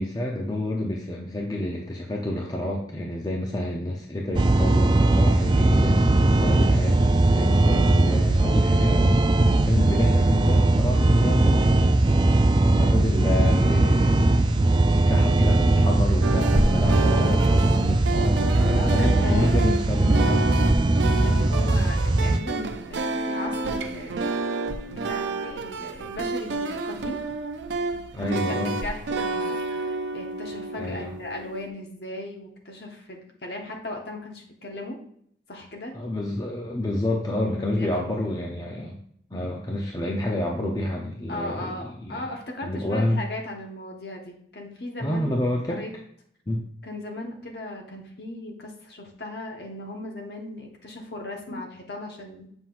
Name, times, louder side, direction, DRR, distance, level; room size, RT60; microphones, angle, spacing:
voice 1, 0.0-11.7 12.6-20.8 28.1-28.8 30.8-31.1 35.9-39.0 39.3-42.3 42.6-43.2 45.0-45.8 46.5-46.7 51.5-51.6, left 1 dB, 20° left, -1 dB, 0.6 m, -29 dB
sound 1, 4.3-22.4, right 2 dB, 25° right, 0.4 m, -20 dB
sound 2, 16.2-31.7, right 3 dB, 85° right, 0.5 m, -30 dB
voice 2, 18.7-19.6 21.2-24.2 24.9-27.2 28.2-35.0 35.5-35.9 37.5-38.2 41.3-45.3 45.7-45.9 46.8-52.5, left 1 dB, 65° left, 0 dB, 1.3 m, -37 dB
7.6 x 5.8 x 2.5 m, 0.67 s
head